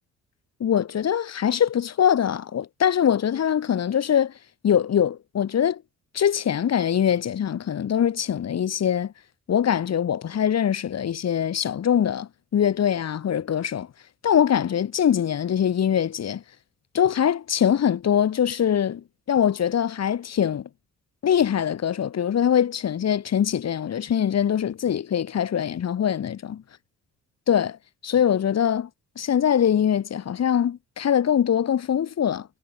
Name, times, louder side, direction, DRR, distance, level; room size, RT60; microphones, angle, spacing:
voice 1, 0.6-4.3 4.6-5.8 6.1-9.1 9.5-13.9 14.2-16.4 16.9-20.7 21.2-26.6 27.5-27.8 28.0-28.9 29.2-32.5, left 9 dB, 60° left, 4.9 m, -23 dB
cardioid pair, 90°, 30 cm